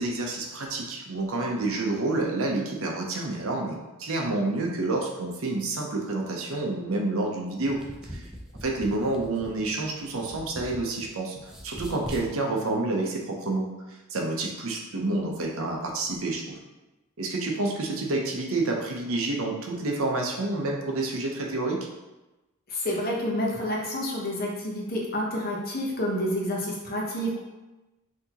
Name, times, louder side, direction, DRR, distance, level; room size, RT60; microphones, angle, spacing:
voice 1, 0.0-8.3 8.6-16.6 17.2-21.8, right 2 dB, 65° right, 0 dB, 0.7 m, -29 dB
sound 1, 7.5-11.1 11.4-12.3, equal, ahead, 0.4 m, -41 dB
voice 2, 22.7-27.4, equal, 40° left, -2 dB, 0.9 m, -29 dB
5.8 x 2.8 x 2.9 m, 1.1 s
head